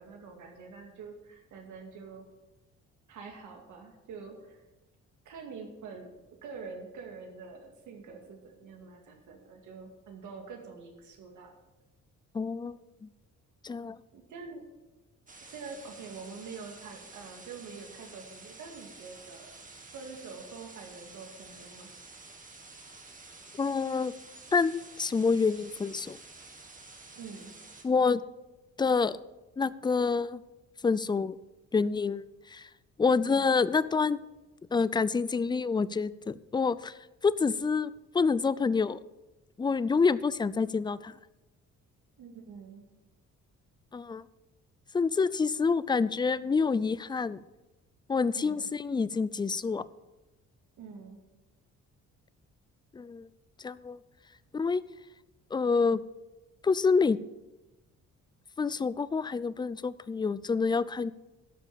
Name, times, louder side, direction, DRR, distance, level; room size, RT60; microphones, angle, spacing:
voice 1, 0.0-2.2 3.1-4.6 5.3-6.1 6.4-11.5 14.1-14.6 15.4-19.5 19.9-21.9 27.1-27.5 33.2-33.5 42.2-42.8 48.3-48.7 50.8-51.2, right 5 dB, 80° right, 2 dB, 2.2 m, -45 dB
voice 2, 12.3-13.1 13.6-14.0 23.5-24.1 24.5-26.2 27.8-28.2 28.8-29.2 29.6-30.4 30.8-31.4 31.7-32.7 33.0-34.2 34.7-36.9 37.2-39.0 39.6-41.1 43.9-44.2 44.9-47.4 48.1-49.8 52.9-53.3 53.6-54.0 54.5-54.8 55.5-56.0 56.6-57.2 58.6-61.1, left 4 dB, 15° left, 18 dB, 0.4 m, -27 dB
sound 1, 15.3-27.8, right 3 dB, 25° right, 1.7 m, -50 dB
12.5 x 5.6 x 6.9 m, 1.1 s
cardioid pair, 90°, 30 cm